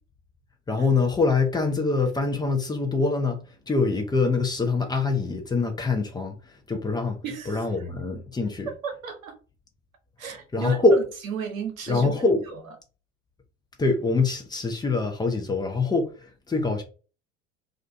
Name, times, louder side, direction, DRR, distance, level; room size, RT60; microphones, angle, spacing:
voice 1, 0.7-7.2 7.5-8.7 10.5-11.0 11.9-12.4 13.8-16.8, left 3 dB, 10° left, 0.5 m, -24 dB
voice 2, 7.2-7.6 8.7-9.3 10.2-12.1, right 6 dB, 85° right, 0.8 m, -33 dB
2.4 x 2.2 x 2.5 m
hypercardioid pair, 75°, 40 cm